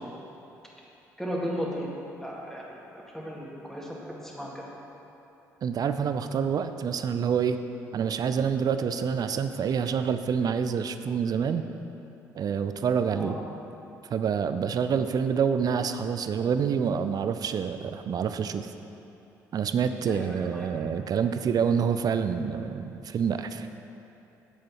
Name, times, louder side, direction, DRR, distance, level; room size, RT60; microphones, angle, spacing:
voice 1, 1.2-1.9 2.2-2.6 3.1-4.6 13.1-13.3 20.1-20.7, equal, 5° left, -4 dB, 2.2 m, -35 dB
voice 2, 5.6-7.6 7.9-11.6 12.3-13.4 14.1-18.7 19.5-23.7, right 7 dB, 45° right, 9 dB, 0.5 m, -27 dB
8.4 x 7.4 x 4.4 m, 2.9 s
hypercardioid pair, 45°, 9 cm